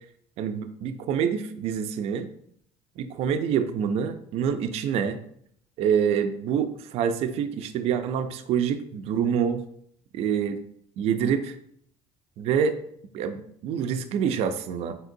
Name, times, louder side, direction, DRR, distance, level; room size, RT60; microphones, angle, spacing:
voice 1, 0.4-2.3 3.0-5.2 5.8-9.6 10.1-10.6 11.0-11.5 12.4-12.8 13.1-15.0, right 7 dB, 55° right, 8 dB, 0.4 m, -26 dB
4.2 x 3.8 x 2.6 m, 0.67 s
cardioid pair, 120°, 13 cm